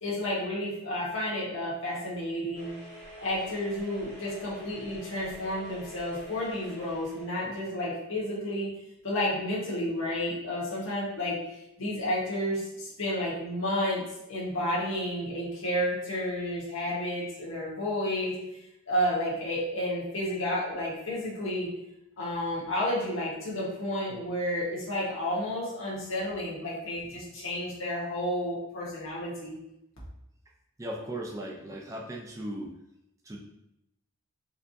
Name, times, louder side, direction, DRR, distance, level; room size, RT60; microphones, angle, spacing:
voice 1, 0.0-2.7 3.2-8.7 9.0-11.4 11.8-14.0 14.3-18.3 18.9-21.7 22.2-29.6, left 1 dB, 65° left, -6 dB, 1.2 m, -31 dB
sound 1, 2.5-7.6, equal, 45° right, 1.0 m, -47 dB
voice 2, 30.8-32.7 33.3-33.4, right 1 dB, 15° right, -1 dB, 0.4 m, -37 dB
4.4 x 2.6 x 2.5 m, 0.85 s
head